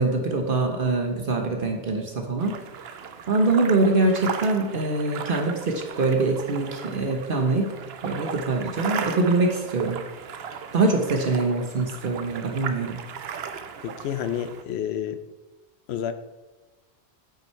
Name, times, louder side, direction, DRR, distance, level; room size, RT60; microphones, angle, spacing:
voice 1, 0.0-2.6 3.3-7.7 8.0-10.0 10.7-13.0, right 3 dB, 60° right, 2 dB, 1.1 m, -24 dB
sound 1, 2.4-14.6, right 7 dB, 75° right, 0.9 m, -36 dB
voice 2, 13.8-15.2 15.9-16.1, left 9 dB, 80° left, 11 dB, 0.9 m, -29 dB
8.9 x 5.6 x 4.5 m, 1.1 s
omnidirectional pair, 1.1 m